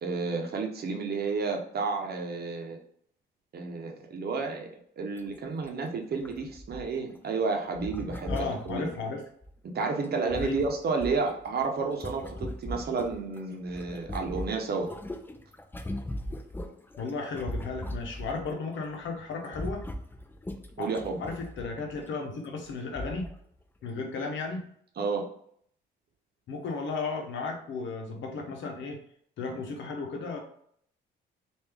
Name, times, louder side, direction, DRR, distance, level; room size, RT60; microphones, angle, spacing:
voice 1, 0.0-2.8 3.5-8.9 9.7-14.9 20.8-21.2 25.0-25.3, right 4 dB, 55° right, 3 dB, 0.9 m, -31 dB
sound 1, 5.2-5.3 5.6-5.7 6.2-7.2 7.8-9.5 10.0-13.4 13.7-18.5 18.8-19.1 19.3-22.0 22.6-22.7 23.0-23.4 23.9-24.0, left 1 dB, 10° left, 0.5 m, -39 dB
voice 2, 8.3-9.2 10.4-10.6 17.0-19.8 20.8-20.9 21.2-23.3 23.8-24.7 26.5-29.0 29.4-30.4, left 4 dB, 70° left, 2 dB, 0.9 m, -34 dB
3.3 x 2.6 x 3.5 m, 0.65 s
cardioid pair, 90°, 20 cm